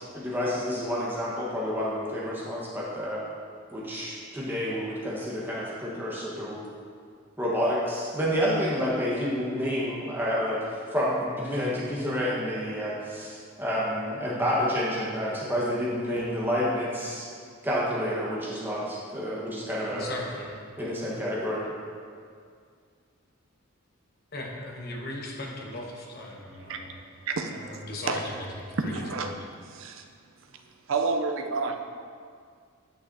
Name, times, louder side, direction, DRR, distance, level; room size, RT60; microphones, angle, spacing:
voice 1, 0.0-3.2 3.7-6.6 7.4-17.3 17.6-20.1 20.8-21.7, equal, 10° right, -6 dB, 1.2 m, -29 dB
voice 2, 19.9-20.6 21.0-21.2 24.3-26.9 27.4-29.0, left 1 dB, 45° left, -1 dB, 1.0 m, -38 dB
voice 3, 27.3-27.8 28.1-28.2 28.9-29.3 29.6-30.0 30.5-30.6 30.9-31.8, right 4 dB, 65° right, 5 dB, 0.5 m, -30 dB
9.2 x 6.2 x 2.7 m, 2.2 s
head